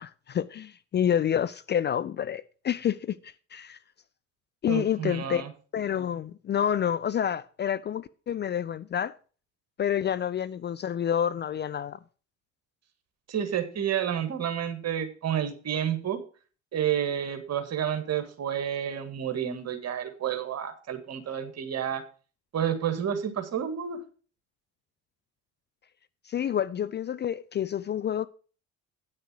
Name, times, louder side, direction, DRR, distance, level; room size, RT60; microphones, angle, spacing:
voice 1, 0.0-3.8 4.6-5.4 5.7-9.1 9.8-12.0 26.3-28.3, left 9 dB, 30° left, 0.4 m, -28 dB
voice 2, 4.7-5.5 13.3-16.2 16.7-22.0 22.5-24.0, right 9 dB, 45° right, 1.8 m, -30 dB
9.5 x 6.5 x 6.1 m
hypercardioid pair, 55°, 37 cm